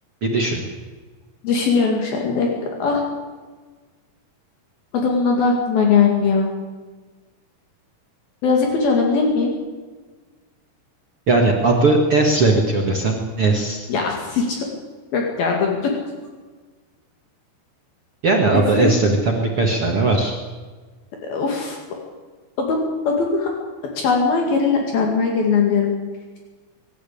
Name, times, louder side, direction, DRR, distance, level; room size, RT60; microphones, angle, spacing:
voice 1, 0.2-0.6 11.3-13.9 18.2-20.3, right 3 dB, 45° right, 1 dB, 2.2 m, -18 dB
voice 2, 1.4-2.5 2.8-3.0 4.9-6.5 8.4-9.5 13.9-14.6 15.1-15.9 18.5-18.9 21.2-21.8 22.6-23.5 24.0-25.9, left 5 dB, 65° left, 0 dB, 4.1 m, -20 dB
25.0 x 12.5 x 8.6 m, 1.4 s
omnidirectional pair, 4.7 m